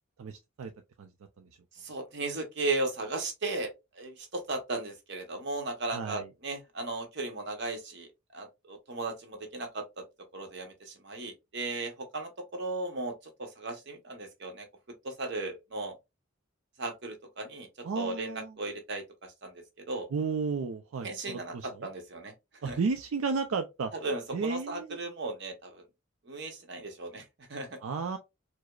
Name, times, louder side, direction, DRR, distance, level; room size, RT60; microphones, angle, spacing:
voice 1, 0.2-0.7 1.0-1.1 1.4-1.5 5.9-6.3 17.8-18.5 20.1-21.9 22.6-23.9 24.3-25.0 27.8-28.2, right 4 dB, 75° right, 0.4 m, -33 dB
voice 2, 1.7-10.0 10.3-14.7 15.0-15.9 16.8-20.1 21.0-22.3 22.6-22.8 24.0-25.8 26.2-27.8, right 2 dB, 55° right, 0.9 m, -36 dB
4.8 x 2.0 x 2.3 m
head